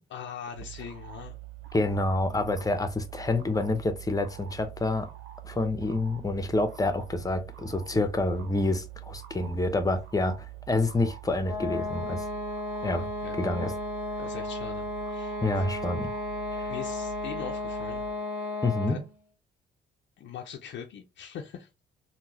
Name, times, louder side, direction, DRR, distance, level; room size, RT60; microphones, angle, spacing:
voice 1, 0.1-1.4 13.2-13.4 14.2-15.4 16.7-18.0 18.9-19.0 20.2-21.7, left 8 dB, 70° left, 0.6 m, -41 dB
sound 1, 0.5-18.1, right 14 dB, 75° right, 0.8 m, -45 dB
voice 2, 1.7-5.1 5.4-12.3 12.8-13.1 13.4-13.7 15.4-16.1 16.5-16.7 18.6-19.0, left 2 dB, 20° left, 0.7 m, -28 dB
sound 2, 11.4-19.1, left 2 dB, 10° right, 1.3 m, -34 dB
3.7 x 2.3 x 2.9 m
cardioid pair, 90°, 20 cm